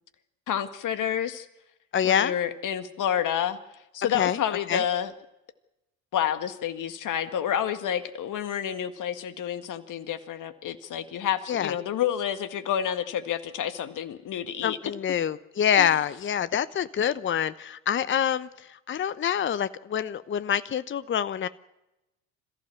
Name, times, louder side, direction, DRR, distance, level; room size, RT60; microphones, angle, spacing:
voice 1, 0.5-1.5 2.0-3.6 3.9-5.1 6.1-14.8 15.8-15.9, left 9 dB, 50° left, 10 dB, 1.8 m, -29 dB
voice 2, 1.9-2.3 4.1-4.4 4.7-4.8 11.5-11.7 14.6-21.5, left 9 dB, 30° left, 15 dB, 0.9 m, -26 dB
27.0 x 15.0 x 7.1 m, 0.94 s
hypercardioid pair, 60°, 40 cm